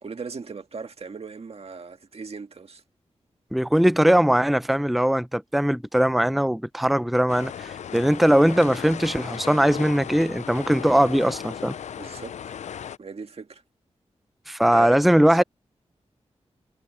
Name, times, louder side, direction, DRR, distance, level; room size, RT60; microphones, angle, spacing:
voice 1, 0.0-2.8 12.0-12.4 13.0-13.6 14.7-15.4, right 5 dB, 60° right, 1.9 m, -38 dB
voice 2, 3.5-11.7 14.5-15.4, equal, ahead, 0.6 m, -20 dB
sound 1, 7.3-13.0, left 8 dB, 80° left, 0.4 m, -36 dB
wide cardioid pair, 75°, 12 cm